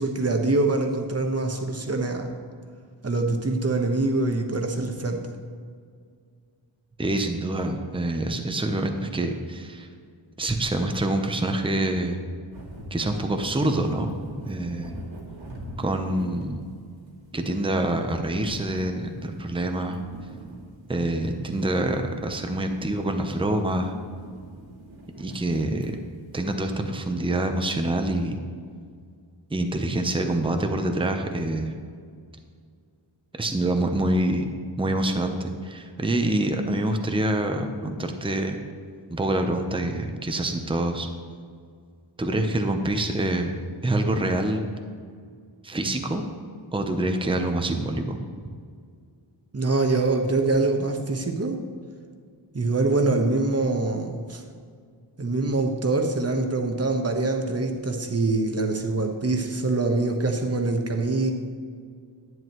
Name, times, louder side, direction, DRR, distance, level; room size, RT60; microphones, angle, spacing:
voice 1, 0.0-2.3 3.0-5.2 49.5-51.6 52.5-54.4 55.2-61.3, right 3 dB, 30° right, 4 dB, 1.1 m, -24 dB
voice 2, 7.0-9.9 10.4-12.2 12.9-14.1 14.5-14.9 15.8-16.6 17.3-20.0 20.9-23.9 25.2-26.0 26.3-28.4 29.5-31.7 33.4-34.5 34.8-38.6 39.1-41.1 42.2-43.6 43.8-44.7 45.6-46.2 46.7-48.2, right 1 dB, 10° right, 5 dB, 0.7 m, -26 dB
sound 1, 12.5-26.8, right 1 dB, 75° right, 2.4 m, -43 dB
11.0 x 9.3 x 3.0 m, 2.1 s
wide cardioid pair, 110°, 47 cm